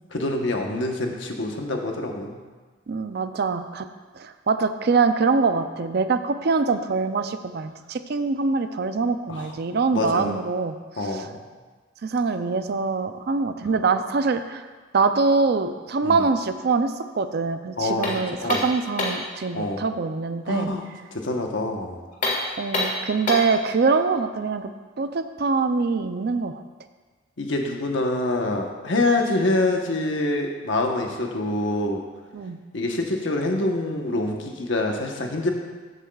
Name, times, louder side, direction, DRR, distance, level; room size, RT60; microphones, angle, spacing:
voice 1, 0.1-2.4 9.3-9.5 9.9-10.3 11.0-11.4 16.0-16.3 17.8-18.1 18.4-18.6 19.5-19.8 20.5-20.8 21.2-22.0 27.4-32.0 32.7-35.5, left 2 dB, 65° left, 2 dB, 1.1 m, -25 dB
voice 2, 2.9-3.9 4.2-11.3 12.0-14.7 14.9-20.7 22.6-24.7 25.0-26.6 32.3-32.6, right 4 dB, 50° right, 9 dB, 0.4 m, -24 dB
sound 1, 18.0-19.3 22.1-23.6, left 2 dB, 40° left, 1.7 m, -27 dB
14.0 x 8.0 x 2.4 m, 1.4 s
head